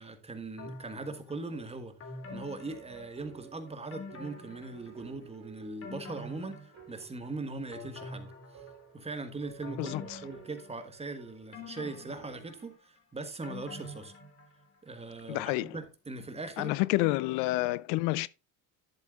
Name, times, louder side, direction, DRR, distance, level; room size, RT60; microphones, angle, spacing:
voice 1, 0.0-1.9 2.3-8.3 8.5-8.6 8.9-14.1 14.8-16.7, right 3 dB, 15° right, 1.4 m, -40 dB
sound 1, 0.6-1.4 2.0-3.4 3.9-5.2 5.6-7.3 7.7-9.1 9.6-11.1 11.5-14.8 15.1-15.2, left 2 dB, 35° left, 2.2 m, -46 dB
sound 2, 1.5-12.7, right 10 dB, 50° right, 3.0 m, -54 dB
voice 2, 9.8-10.2 15.3-15.8 16.6-18.3, left 19 dB, 80° left, 0.5 m, -29 dB
11.0 x 8.3 x 2.4 m
cardioid pair, 125°, 42 cm